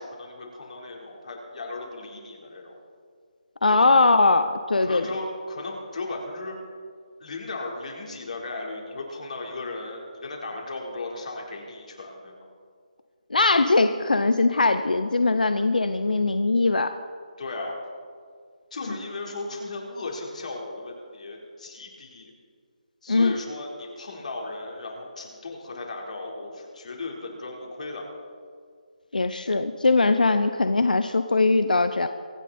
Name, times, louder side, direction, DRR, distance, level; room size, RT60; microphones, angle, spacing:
voice 1, 0.0-2.8 3.7-3.9 4.8-6.6 7.2-12.5 17.4-17.8 18.7-22.3 23.0-28.1, left 2 dB, 60° left, -1 dB, 4.0 m, -36 dB
voice 2, 3.6-5.0 13.3-17.0 23.1-23.3 29.1-32.1, left 3 dB, 85° left, 10 dB, 0.8 m, -21 dB
24.0 x 10.0 x 4.3 m, 2.1 s
figure-of-eight pair, 160°, 4 cm